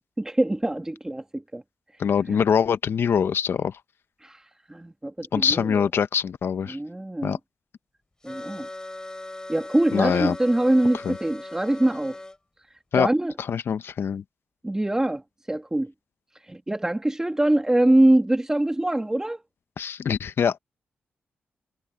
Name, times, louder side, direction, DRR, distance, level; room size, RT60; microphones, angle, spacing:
voice 1, 0.2-1.6 2.3-2.4 4.2-4.4 4.7-5.8 6.7-7.4 8.2-8.7 9.5-12.2 13.0-13.3 14.6-15.2 15.5-15.9 16.4-19.4, right 1 dB, 15° right, 1.7 m, -23 dB
voice 2, 2.0-3.8 5.3-6.8 7.2-7.4 9.9-10.4 11.0-11.2 12.9-13.1 13.5-14.2 19.8-20.6, left 7 dB, 70° left, 0.9 m, -23 dB
sound 1, 8.2-12.4, left 2 dB, 15° left, 4.0 m, -39 dB
cardioid pair, 80°, 4 cm